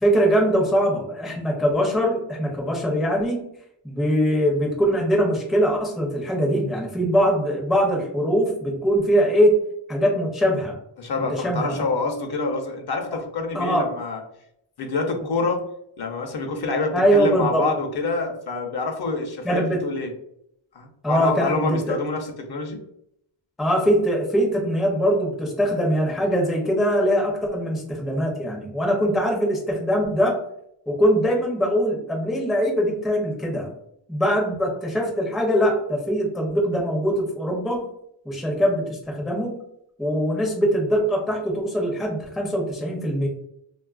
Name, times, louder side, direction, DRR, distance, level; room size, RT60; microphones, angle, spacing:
voice 1, 0.0-3.4 3.8-9.5 9.9-10.8 11.3-11.7 13.5-13.9 16.9-17.7 19.4-19.8 21.0-22.0 23.6-30.4 30.9-33.7 34.1-37.8 38.3-39.6 40.0-43.3, equal, ahead, -1 dB, 0.4 m, -22 dB
voice 2, 11.0-14.2 14.8-15.6 16.0-20.1 20.7-22.8, left 3 dB, 55° left, 3 dB, 0.5 m, -27 dB
3.0 x 2.3 x 2.3 m, 0.75 s
wide cardioid pair, 175°, 48 cm